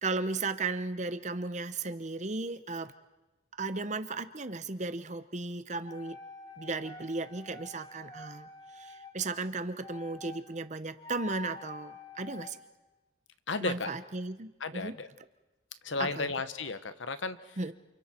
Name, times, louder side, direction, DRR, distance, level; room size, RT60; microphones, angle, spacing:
voice 1, 0.0-2.9 3.6-6.2 6.6-8.5 8.7-12.6 13.6-15.0 16.0-16.3 17.6-17.7, right 3 dB, 35° right, 12 dB, 0.9 m, -35 dB
sound 1, 5.7-9.1 9.8-10.4 11.0-12.5, left 2 dB, 20° left, 2.2 m, -47 dB
voice 2, 13.5-13.9 14.6-15.1 15.8-17.6, left 3 dB, 75° left, 11 dB, 1.2 m, -34 dB
29.0 x 28.5 x 4.5 m, 1.1 s
head